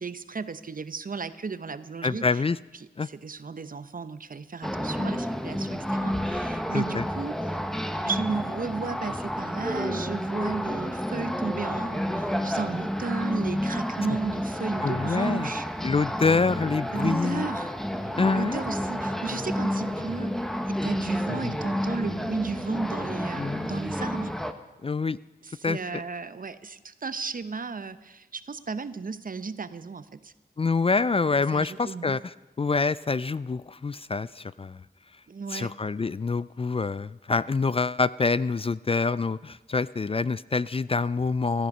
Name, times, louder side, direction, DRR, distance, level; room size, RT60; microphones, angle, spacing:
voice 1, 0.0-2.4 3.0-7.6 8.0-15.7 16.9-20.3 20.7-24.3 25.4-30.3 31.5-32.2 35.3-35.7, right 4 dB, 50° right, 13 dB, 0.8 m, -34 dB
voice 2, 2.0-2.6 3.0-3.1 6.7-7.0 14.8-15.5 15.8-17.5 18.2-18.6 21.3-21.5 23.4-23.7 24.8-25.2 25.6-26.0 30.6-34.8 35.5-41.7, left 4 dB, 30° left, 18 dB, 0.4 m, -26 dB
sound 1, 4.6-24.5, equal, ahead, 1.2 m, -30 dB
16.0 x 13.5 x 5.4 m, 1.0 s
cardioid pair, 40°, 18 cm